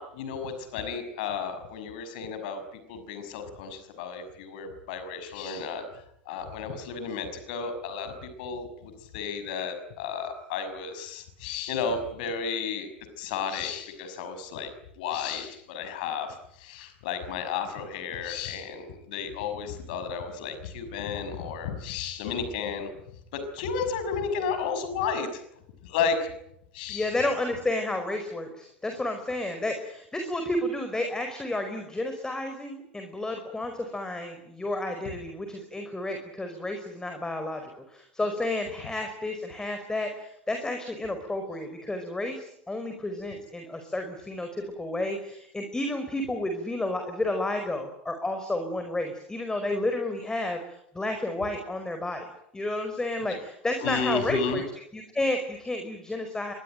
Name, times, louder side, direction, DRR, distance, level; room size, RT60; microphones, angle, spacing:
voice 1, 0.0-2.6 2.9-5.9 6.3-12.9 13.2-14.7 15.0-22.9 23.3-25.4 25.8-26.3 26.7-27.1 53.8-54.6, left 6 dB, 60° left, 9 dB, 6.0 m, -33 dB
voice 2, 26.9-52.3 52.5-54.6 54.9-56.5, left 1 dB, 10° left, 6 dB, 5.1 m, -31 dB
25.5 x 23.0 x 9.2 m, 0.78 s
figure-of-eight pair, 75°, 5 cm